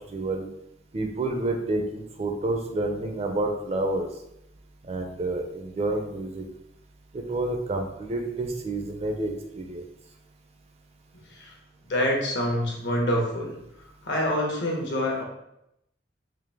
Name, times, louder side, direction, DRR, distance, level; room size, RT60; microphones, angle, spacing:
voice 1, 0.1-0.5 0.9-4.1 4.8-6.4 7.1-9.9, right 2 dB, 35° right, 4 dB, 0.4 m, -29 dB
voice 2, 11.9-13.5 14.0-15.2, left 1 dB, 70° left, -1 dB, 1.0 m, -26 dB
4.0 x 2.6 x 3.3 m, 0.83 s
head